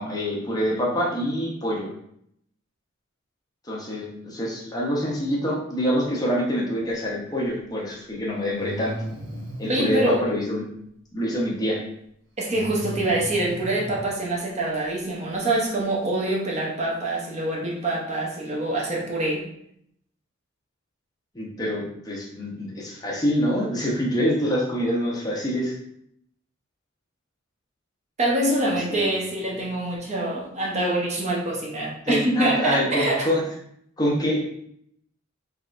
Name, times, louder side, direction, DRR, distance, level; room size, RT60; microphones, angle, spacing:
voice 1, 0.0-1.9 3.7-8.9 9.6-10.6 11.1-11.8 21.3-25.7 28.6-29.1 32.1-33.4 34.0-34.4, equal, 20° left, -4 dB, 0.7 m, -26 dB
Breathing, 7.7-7.8 8.5-10.0 12.5-14.0, right 1 dB, 75° right, 0.9 m, -36 dB
voice 2, 9.7-10.3 12.4-19.5 28.2-33.3, right 1 dB, 35° right, -2 dB, 0.7 m, -25 dB
3.5 x 3.4 x 2.5 m, 0.72 s
head